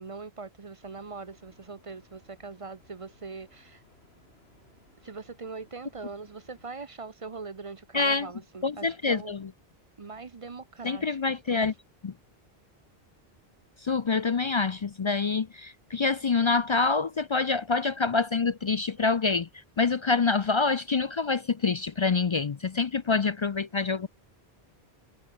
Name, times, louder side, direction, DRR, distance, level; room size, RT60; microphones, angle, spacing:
voice 1, 0.0-3.8 5.0-9.4 10.0-11.7, right 4 dB, 35° right, 0.7 m, -42 dB
sound 1, 0.8-6.7, left 1 dB, 75° left, 7.2 m, -62 dB
voice 2, 7.9-8.3 8.6-9.5 10.8-11.7 12.0-12.1 13.8-19.5 19.8-24.1, left 4 dB, 45° left, 0.4 m, -26 dB
omnidirectional pair, 1.1 m